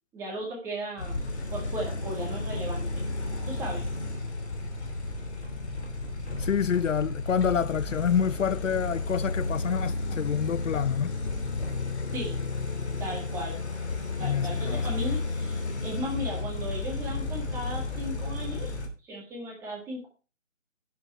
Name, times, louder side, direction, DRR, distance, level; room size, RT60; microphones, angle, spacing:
voice 1, 0.1-1.2 1.5-2.9 3.4-3.8 12.1-12.4 13.0-13.6 14.2-18.7 19.1-20.1, equal, 5° right, 1.9 m, -36 dB
sound 1, 1.0-18.9, left 3 dB, 60° left, 3.0 m, -32 dB
voice 2, 6.4-11.2 14.2-14.9, left 7 dB, 75° left, 0.5 m, -27 dB
11.0 x 6.9 x 4.5 m
figure-of-eight pair, 155°, 38 cm